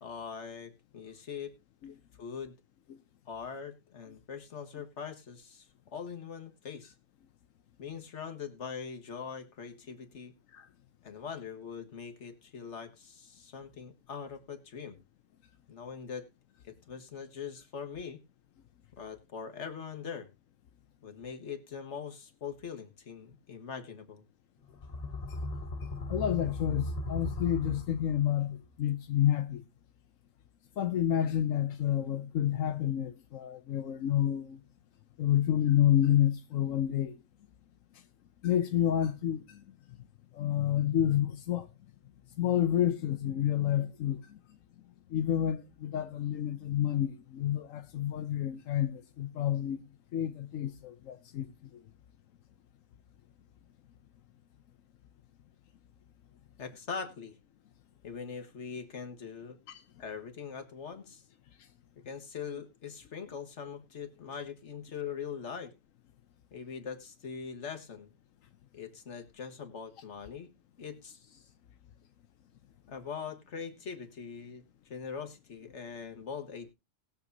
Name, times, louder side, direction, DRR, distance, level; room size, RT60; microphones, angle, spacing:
voice 1, 0.0-1.5 2.2-2.5 3.3-5.7 5.9-6.9 7.8-10.3 11.0-15.0 15.7-16.3 16.6-18.2 19.0-20.3 21.0-24.2 56.6-57.4 58.0-59.6 60.0-61.2 62.0-65.7 66.5-68.1 68.7-70.5 70.8-71.5 72.9-76.7, left 6 dB, 65° left, 1.7 m, -42 dB
sound 1, 24.7-28.5, left 2 dB, 35° left, 0.8 m, -37 dB
voice 2, 26.1-29.6 30.8-34.6 35.2-37.2 38.4-39.6 40.3-41.7 42.4-44.4 45.1-49.8 50.1-51.5 59.7-59.8, left 11 dB, 90° left, 1.1 m, -29 dB
20.0 x 7.1 x 2.7 m
omnidirectional pair, 1.3 m